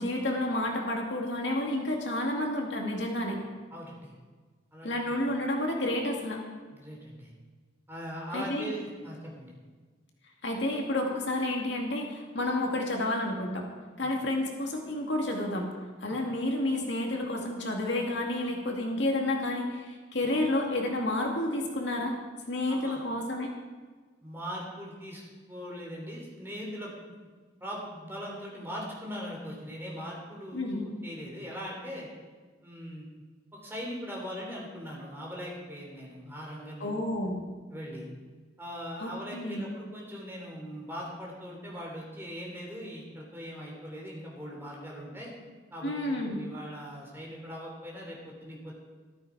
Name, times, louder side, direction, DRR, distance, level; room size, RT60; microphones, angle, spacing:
voice 1, 0.0-3.4 4.8-6.4 8.3-8.7 10.4-13.7 14.0-15.7 16.0-22.2 22.5-23.5 30.5-30.8 36.8-37.4 39.0-39.7 45.8-46.4, left 1 dB, 65° left, 1 dB, 2.2 m, -30 dB
voice 2, 3.7-4.1 4.7-5.2 6.7-7.3 7.9-9.5 14.0-14.1 16.1-16.2 22.7-23.0 24.2-25.2 25.5-27.1 27.6-32.1 32.6-33.1 33.5-36.9 37.7-38.1 38.6-45.3 45.7-48.7, equal, 10° right, -2 dB, 3.4 m, -40 dB
13.5 x 13.0 x 4.7 m, 1.4 s
head